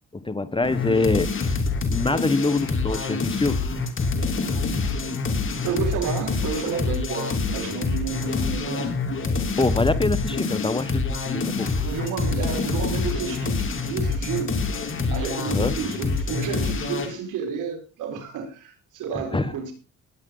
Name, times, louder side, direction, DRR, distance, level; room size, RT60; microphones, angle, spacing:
voice 1, 0.1-1.6 1.9-3.6 9.6-11.7 15.5-15.7 19.1-19.5, left 3 dB, 15° left, 1.2 m, -25 dB
sound 1, 0.6-17.2, left 4 dB, 40° left, 3.0 m, -26 dB
voice 2, 5.6-8.9 11.8-14.6 15.1-19.7, right 6 dB, 85° right, 4.7 m, -31 dB
19.5 x 9.1 x 3.9 m
cardioid pair, 90°, 30 cm